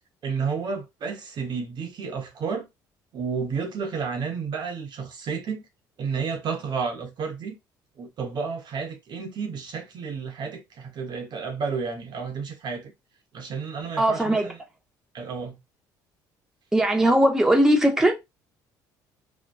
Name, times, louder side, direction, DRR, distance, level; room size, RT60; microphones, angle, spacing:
voice 1, 0.2-2.7 3.1-5.6 6.0-7.5 8.0-12.9 13.3-14.6 15.1-15.6, right 5 dB, 50° right, 0.7 m, -31 dB
voice 2, 14.0-14.5 16.7-18.1, right 1 dB, 5° right, 0.7 m, -19 dB
2.5 x 2.2 x 2.2 m
supercardioid pair, 70°, 9 cm